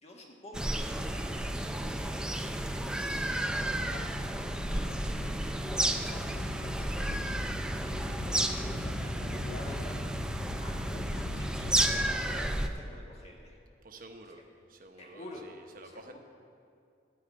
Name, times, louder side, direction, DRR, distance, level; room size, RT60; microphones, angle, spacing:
voice 1, 0.0-4.2 4.7-7.9 8.2-10.2 10.6-13.6 15.0-15.5 15.8-16.2, left 1 dB, 35° left, 0 dB, 1.5 m, -48 dB
sound 1, 0.5-12.7, right 1 dB, 5° right, 0.4 m, -32 dB
sound 2, 2.7-12.1, left 2 dB, 55° left, 0.7 m, -40 dB
voice 2, 13.8-14.4 14.7-16.2, right 2 dB, 50° right, 4 dB, 1.0 m, -50 dB
13.5 x 4.8 x 8.8 m, 2.4 s
head